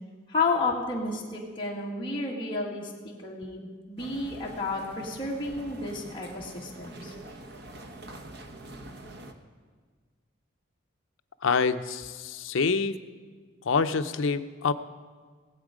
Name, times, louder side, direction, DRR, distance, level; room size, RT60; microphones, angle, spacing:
voice 1, 0.3-7.1, left 3 dB, 25° left, -3 dB, 2.0 m, -31 dB
sound 1, 4.0-9.3, right 1 dB, 55° right, 0.9 m, -45 dB
voice 2, 11.4-13.0 13.6-14.7, left 5 dB, 75° left, 10 dB, 0.6 m, -26 dB
19.5 x 8.1 x 5.0 m, 1.5 s
head